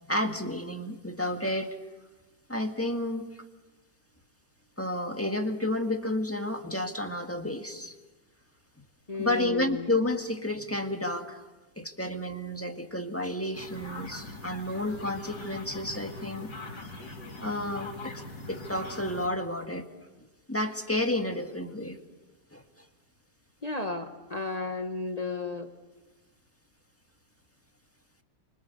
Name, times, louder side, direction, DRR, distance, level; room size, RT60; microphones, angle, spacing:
voice 1, 0.1-1.8 2.5-3.3 4.8-7.9 9.2-11.4 11.8-16.5 17.4-18.2 18.5-19.9 20.5-22.0 22.5-22.6, left 1 dB, 10° left, 4 dB, 1.6 m, -31 dB
voice 2, 9.1-9.9 23.6-25.7, left 3 dB, 25° left, 5 dB, 1.3 m, -33 dB
sound 1, 13.5-19.3, left 2 dB, 85° left, 3.9 m, -42 dB
26.0 x 25.5 x 6.9 m, 1.1 s
omnidirectional pair, 1.8 m